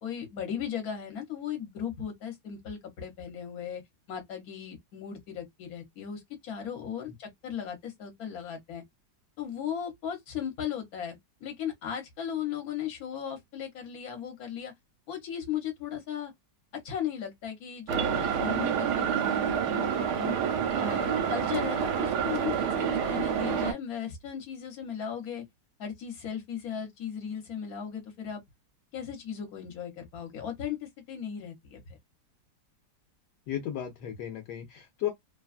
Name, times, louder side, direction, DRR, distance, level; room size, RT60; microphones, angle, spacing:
voice 1, 0.0-3.8 4.1-8.8 9.4-14.7 15.1-16.3 16.8-20.4 20.8-25.4 25.8-28.4 28.9-30.8 31.1-32.0, left 8 dB, 60° left, 1.4 m, -37 dB
sound 1, 17.9-23.7, right 8 dB, 75° right, 1.2 m, -28 dB
voice 2, 33.5-35.1, left 11 dB, 80° left, 1.2 m, -34 dB
3.1 x 2.2 x 2.4 m
omnidirectional pair, 1.8 m